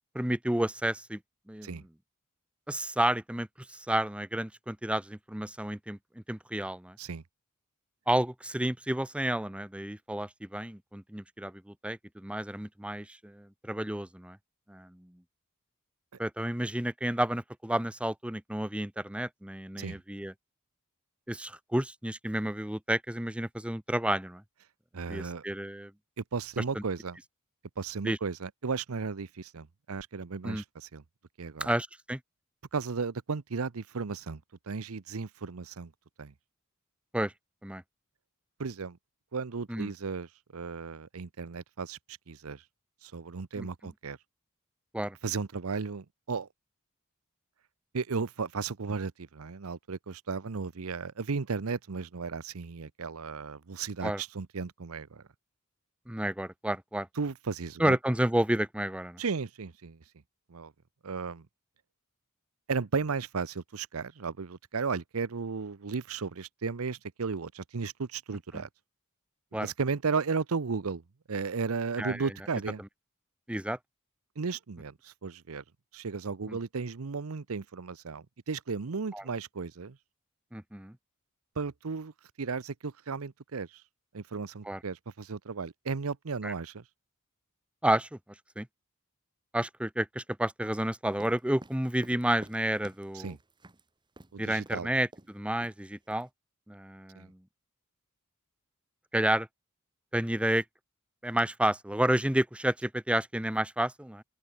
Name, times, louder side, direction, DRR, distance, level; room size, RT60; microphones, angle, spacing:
voice 1, 0.1-1.2 1.5-1.9 2.7-6.0 6.3-7.0 8.1-14.4 14.7-15.1 16.2-20.3 21.3-24.4 25.1-25.9 26.7-26.8 28.0-28.2 30.4-30.6 31.6-32.2 37.1-37.3 37.6-37.8 39.7-39.9 43.6-43.7 44.9-45.2 54.0-54.2 56.1-57.1 57.8-59.2 68.5-68.6 69.5-69.7 72.0-72.3 73.5-73.8 76.5-76.6 79.1-79.2 80.5-80.9 84.6-84.8 86.4-86.5 87.8-88.2 88.6-88.7 89.5-93.4 94.4-96.3 96.7-97.4 99.1-99.5 100.1-100.6 101.2-104.2, right 1 dB, 5° right, 0.9 m, -31 dB
voice 2, 24.9-25.4 26.2-27.2 27.8-31.0 31.4-31.7 32.7-34.4 34.7-35.9 36.2-36.3 38.6-39.0 39.3-42.0 42.3-42.6 43.0-44.2 45.2-46.5 47.9-55.2 57.2-58.0 59.2-60.0 60.5-60.7 61.0-61.5 62.7-68.7 69.6-71.0 71.3-72.8 74.4-75.6 75.9-80.0 81.6-82.1 82.4-83.7 84.1-86.8 93.1-93.4 94.3-94.9 97.1-97.3, right 5 dB, 75° right, 0.7 m, -35 dB
sound 1, 91.1-93.8 94.2-94.3 94.7-94.8 95.1-95.4 95.6-96.2, right 1 dB, 20° right, 1.6 m, -51 dB
open air
head